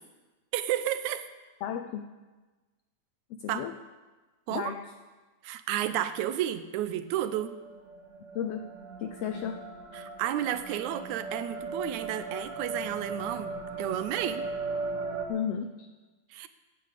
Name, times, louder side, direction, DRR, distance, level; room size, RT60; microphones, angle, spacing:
voice 1, 0.5-1.3 3.5-3.7 4.5-4.8 5.4-7.6 9.9-13.5 13.8-14.5 16.3-16.5, right 11 dB, 75° right, 12 dB, 2.0 m, -31 dB
voice 2, 1.6-2.1 3.3-3.8 4.5-4.9 8.3-8.7 9.0-9.7 15.3-15.9, left 8 dB, 85° left, 8 dB, 1.4 m, -34 dB
sound 1, 7.3-15.2, right 3 dB, 60° right, 2.7 m, -38 dB
15.0 x 8.6 x 8.3 m, 1.2 s
omnidirectional pair, 3.5 m